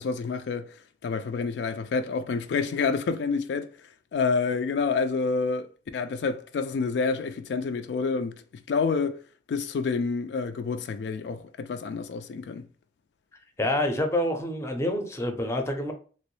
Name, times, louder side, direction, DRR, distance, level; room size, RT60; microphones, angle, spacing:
voice 1, 0.0-9.2 9.5-12.7, left 4 dB, 80° left, 0.3 m, -28 dB
voice 2, 13.6-15.9, left 1 dB, 15° left, 0.5 m, -27 dB
3.0 x 3.0 x 3.1 m
head